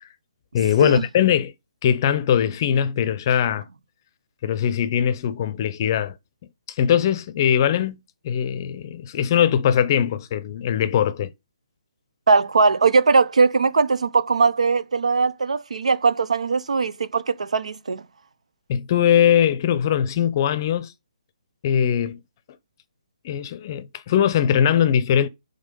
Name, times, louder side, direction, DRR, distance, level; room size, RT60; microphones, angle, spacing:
voice 1, 0.5-1.5 1.8-3.6 4.4-6.1 6.8-8.0 8.2-11.3 18.7-20.9 21.6-22.2 23.2-25.3, left 9 dB, 35° left, 0.6 m, -21 dB
voice 2, 12.3-18.0, right 4 dB, 80° right, 0.7 m, -20 dB
5.5 x 3.7 x 5.2 m
hypercardioid pair, 155°, 4 cm